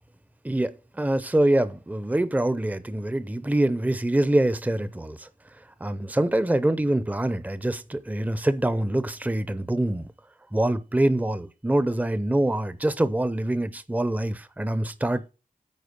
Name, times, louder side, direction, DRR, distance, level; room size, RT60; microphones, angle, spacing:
voice 1, 0.4-5.3 5.8-10.1 10.5-15.3, right 1 dB, 10° right, 0.6 m, -25 dB
9.6 x 4.5 x 5.2 m
wide cardioid pair, 60°, 15 cm